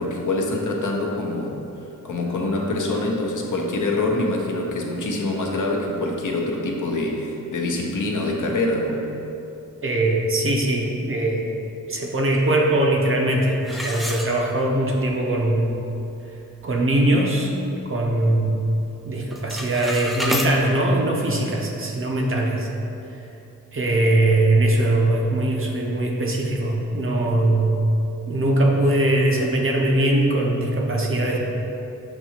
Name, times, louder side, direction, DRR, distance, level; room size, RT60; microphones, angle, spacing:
voice 1, 0.0-1.5 2.0-9.0, left 2 dB, 60° left, 0 dB, 0.7 m, -25 dB
voice 2, 9.8-11.6 11.9-15.8 16.6-17.5 17.9-18.6 19.1-22.7 23.7-27.9 28.3-31.4, right 1 dB, 40° right, -1 dB, 0.6 m, -21 dB
sound 1, 13.6-14.9 15.4-15.5 16.0-16.1 16.5-16.8 17.3-18.4 18.6-19.0 19.2-20.5, equal, ahead, 0.3 m, -30 dB
6.7 x 2.7 x 2.8 m, 2.9 s
cardioid pair, 75°, 34 cm